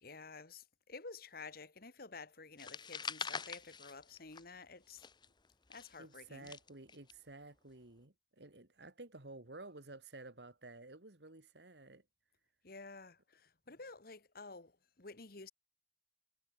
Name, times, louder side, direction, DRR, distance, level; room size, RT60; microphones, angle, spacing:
voice 1, 0.0-5.1 5.7-6.5 12.6-15.5, left 4 dB, 60° left, 2.0 m, -51 dB
sound 1, 2.6-4.6 4.9-7.1, left 5 dB, 25° left, 1.1 m, -44 dB
voice 2, 6.0-12.0, right 2 dB, 70° right, 2.3 m, -53 dB
head